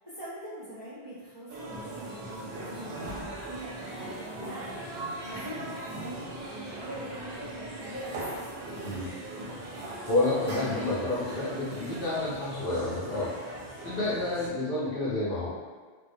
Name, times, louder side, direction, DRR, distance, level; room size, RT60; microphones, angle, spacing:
voice 1, 0.0-9.2, equal, 30° right, -13 dB, 0.5 m, -43 dB
sound 1, 1.5-14.5, right 1 dB, 65° right, 0.7 m, -39 dB
voice 2, 9.7-13.3 13.8-15.5, left 2 dB, 60° left, -8 dB, 0.8 m, -29 dB
2.3 x 2.1 x 2.6 m, 1.5 s
omnidirectional pair, 1.2 m